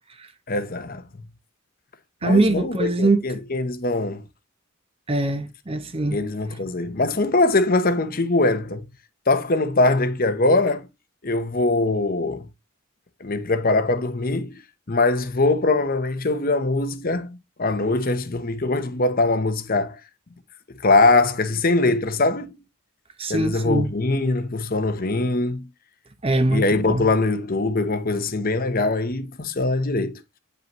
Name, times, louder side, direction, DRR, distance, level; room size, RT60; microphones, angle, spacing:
voice 1, 0.5-1.0 2.2-4.2 6.1-8.8 9.3-10.9 11.2-12.4 13.2-14.6 14.9-20.0 20.8-22.6 23.3-25.7 26.5-30.1, left 2 dB, 40° left, 0.9 m, -22 dB
voice 2, 2.2-3.4 5.1-6.2 23.2-23.9 26.2-27.1, right 2 dB, 25° right, 0.8 m, -22 dB
8.8 x 5.4 x 3.0 m
head